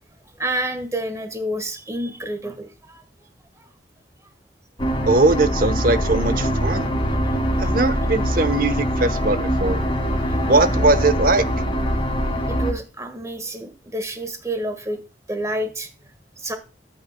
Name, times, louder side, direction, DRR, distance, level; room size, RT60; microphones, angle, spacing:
voice 1, 0.3-3.0 3.6-3.7 7.5-7.8 10.3-10.4 12.5-15.0 15.3-15.9 16.4-16.6, right 1 dB, 15° right, 1.5 m, -29 dB
sound 1, 4.8-12.7, equal, 30° left, 2.6 m, -23 dB
voice 2, 5.1-6.9 7.6-9.8 10.5-11.4, right 2 dB, 50° right, 0.9 m, -20 dB
13.0 x 8.5 x 2.2 m
head